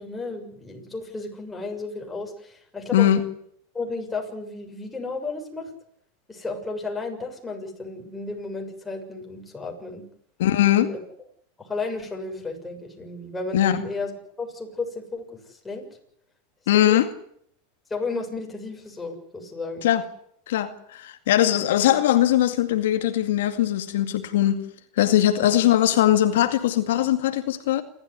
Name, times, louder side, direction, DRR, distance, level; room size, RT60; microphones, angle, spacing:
voice 1, 0.0-3.1 3.7-5.7 6.3-10.0 10.9-11.0 11.6-14.1 14.4-15.9 16.7-17.0 17.9-19.9 21.5-21.8 25.3-25.5, left 3 dB, 10° left, 6.8 m, -33 dB
voice 2, 2.9-3.2 10.4-10.9 13.5-13.8 16.7-17.1 19.8-20.0 20.5-24.6 25.0-27.8, left 12 dB, 80° left, 2.2 m, -20 dB
28.5 x 13.5 x 9.7 m
supercardioid pair, 125°, 0 cm